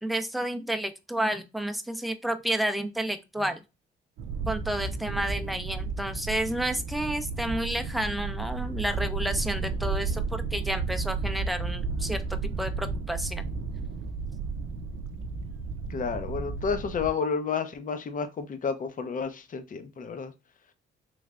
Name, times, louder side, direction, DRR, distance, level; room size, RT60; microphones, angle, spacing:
voice 1, 0.0-3.6 4.5-13.4, right 1 dB, ahead, 0.5 m, -31 dB
sound 1, 4.2-17.1, right 4 dB, 80° right, 0.5 m, -33 dB
voice 2, 15.9-20.3, left 5 dB, 40° left, 0.7 m, -31 dB
3.3 x 3.1 x 2.4 m
cardioid pair, 90°, 20 cm